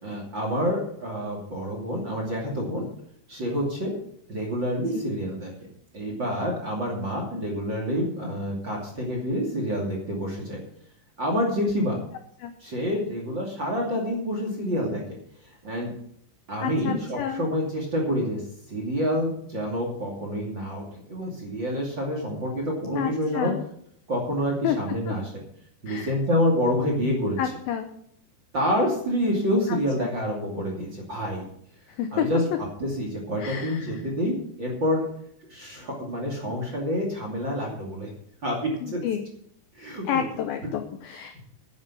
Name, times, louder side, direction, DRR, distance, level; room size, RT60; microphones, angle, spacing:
voice 1, 0.0-2.8 3.3-4.0 4.3-5.5 5.9-10.6 11.2-12.0 12.6-15.2 15.6-15.9 16.5-18.4 18.7-23.5 24.1-25.3 25.8-27.4 28.5-31.5 32.1-32.4 32.8-35.0 35.5-38.1 38.4-39.0 39.8-40.2, equal, 30° right, 0 dB, 2.4 m, -27 dB
voice 2, 16.6-17.5 22.9-23.6 24.6-24.8 25.1-25.2 25.9-26.1 27.4-27.9 29.7-30.1 32.0-32.3 33.4-34.0 36.5-36.6 38.8-39.3 40.1-41.4, left 9 dB, 80° left, 7 dB, 2.1 m, -30 dB
11.0 x 9.6 x 5.9 m, 0.68 s
omnidirectional pair, 5.4 m